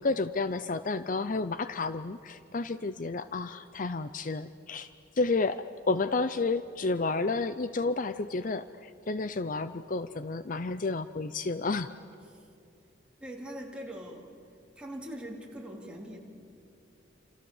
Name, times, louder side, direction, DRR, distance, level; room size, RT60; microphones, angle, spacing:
voice 1, 0.0-4.9 5.1-11.9, left 3 dB, 45° left, 12 dB, 0.6 m, -31 dB
voice 2, 13.2-14.3 14.8-16.2, right 1 dB, 5° right, -2 dB, 3.6 m, -42 dB
28.5 x 28.0 x 7.3 m, 2.6 s
head